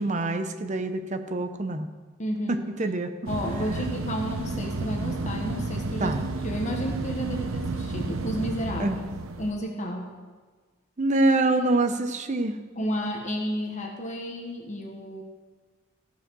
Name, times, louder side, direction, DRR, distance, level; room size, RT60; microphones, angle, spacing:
voice 1, 0.0-1.9 2.5-3.1 6.0-6.2 8.8-9.0 11.0-12.6, right 2 dB, 35° right, 8 dB, 0.7 m, -25 dB
voice 2, 2.2-2.6 3.3-6.2 6.4-9.0 9.4-10.1 12.8-15.2, equal, 35° left, 1 dB, 1.2 m, -32 dB
sound 1, 3.3-9.5, right 3 dB, 75° right, 0.7 m, -31 dB
15.0 x 5.2 x 6.2 m, 1.4 s
head